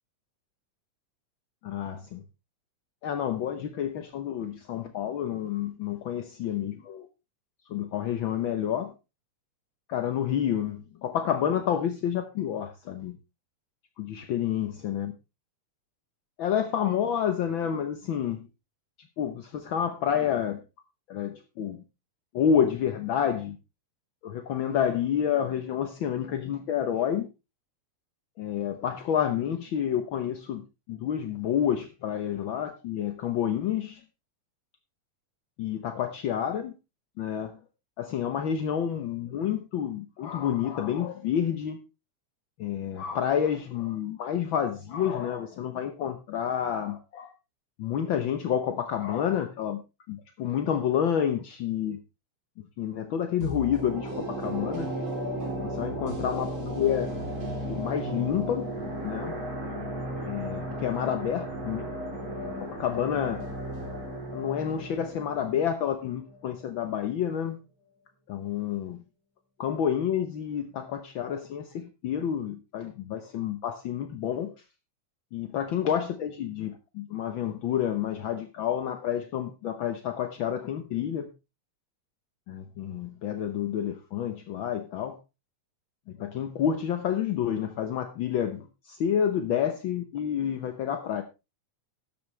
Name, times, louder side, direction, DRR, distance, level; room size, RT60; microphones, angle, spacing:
voice 1, 1.6-2.2 3.0-7.1 7.7-8.9 9.9-13.2 14.0-15.1 16.4-18.5 19.2-20.6 21.1-21.8 22.3-23.6 24.2-27.3 28.4-34.0 35.6-36.7 37.2-37.6 38.0-41.8 42.6-47.3 47.8-49.8 50.1-52.0 52.8-54.9 55.6-57.1 57.7-58.7 59.0-59.4 60.2-61.9 62.4-63.4 64.3-67.6 68.3-69.0 69.6-74.5 75.3-81.3 82.5-85.2 86.1-91.2, left 9 dB, 70° left, 1.2 m, -29 dB
sound 1, 53.4-66.5 66.8-66.9, right 1 dB, 45° right, 4.0 m, -35 dB
12.5 x 10.5 x 3.2 m
omnidirectional pair, 3.4 m